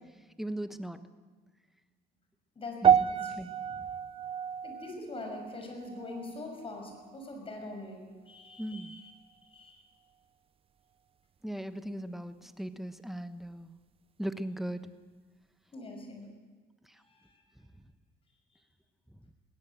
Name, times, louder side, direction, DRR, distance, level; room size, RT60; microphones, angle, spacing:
voice 1, 0.4-1.0 2.8-3.1 3.4-3.9 8.6-8.9 11.4-13.7 14.2-14.8 16.8-17.0 19.1-19.3, right 1 dB, ahead, 10 dB, 1.1 m, -38 dB
sound 1, 2.8-7.2 7.5-7.9 8.5-8.6, right 8 dB, 35° right, 0.5 m, -30 dB
voice 2, 4.6-9.1 9.4-9.8 15.7-16.3 16.9-17.4, left 2 dB, 35° left, 4 dB, 6.0 m, -43 dB
21.5 x 17.0 x 7.7 m, 1.4 s
cardioid pair, 110°, 17 cm